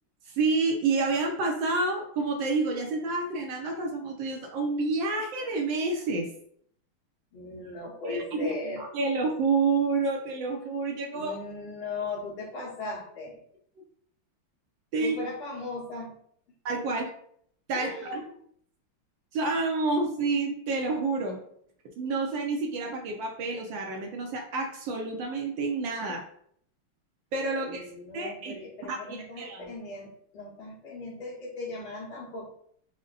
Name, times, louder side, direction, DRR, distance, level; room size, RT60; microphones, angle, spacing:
voice 1, 0.3-6.3 8.1-8.5 8.8-11.4 14.9-15.1 16.6-17.1 17.7-18.2 19.3-21.4 22.0-26.2 27.3-27.8 28.1-28.6 28.9-29.0 29.4-29.7, right 3 dB, 70° right, 2 dB, 1.2 m, -28 dB
voice 2, 7.3-8.8 11.1-13.4 15.0-16.1 17.7-18.4 27.6-32.4, left 2 dB, 75° left, -4 dB, 2.0 m, -38 dB
5.0 x 2.1 x 4.0 m, 0.65 s
omnidirectional pair, 2.3 m